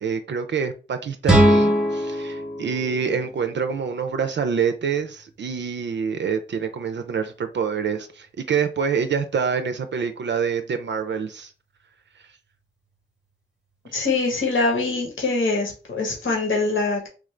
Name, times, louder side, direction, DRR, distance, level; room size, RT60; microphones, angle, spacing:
voice 1, 0.0-11.5, right 6 dB, 65° right, 0.4 m, -26 dB
sound 1, 1.2-4.3, right 1 dB, 5° right, 0.8 m, -21 dB
voice 2, 13.9-17.1, left 3 dB, 75° left, 1.2 m, -23 dB
3.4 x 2.5 x 3.2 m
cardioid pair, 70°, 20 cm